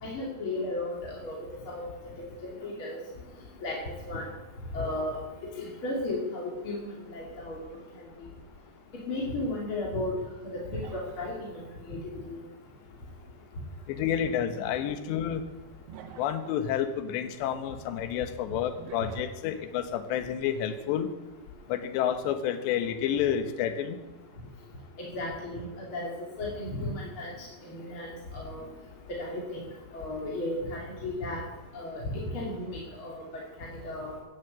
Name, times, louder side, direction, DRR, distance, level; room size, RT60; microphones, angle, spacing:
voice 1, 0.0-1.4 1.6-1.9 2.4-3.0 3.6-3.8 4.1-4.3 4.7-5.2 5.6-7.6 9.1-10.1 10.4-12.0 12.3-12.4 25.0-26.1 26.4-28.7 29.1-29.6 29.9-31.4 31.7-34.2, left 2 dB, 35° left, -3 dB, 2.6 m, -34 dB
sound 1, 10.7-11.6 14.0-14.2 15.9-16.6 18.8-19.4, right 8 dB, 70° right, 2.8 m, -47 dB
voice 2, 13.9-15.4 16.2-21.1 21.7-24.0, left 9 dB, 75° left, 8 dB, 3.3 m, -29 dB
15.0 x 11.0 x 8.4 m, 1.2 s
omnidirectional pair, 5.4 m